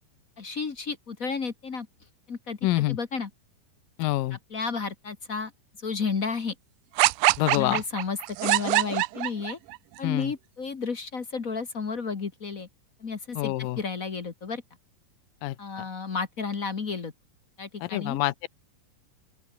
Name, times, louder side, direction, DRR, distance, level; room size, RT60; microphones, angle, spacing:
voice 1, 0.4-1.9 2.3-2.6 2.9-3.3 4.3-5.5 5.8-6.5 7.5-9.6 10.0-12.7 13.0-14.6 15.6-17.1 17.6-18.2, left 5 dB, 45° left, 1.1 m, -32 dB
voice 2, 2.6-3.0 4.0-4.4 7.4-7.8 10.0-10.3 13.4-13.8 15.4-15.6 17.8-18.5, left 17 dB, 75° left, 2.5 m, -26 dB
sound 1, 7.0-9.8, right 21 dB, 80° right, 2.1 m, -23 dB
open air
omnidirectional pair, 4.1 m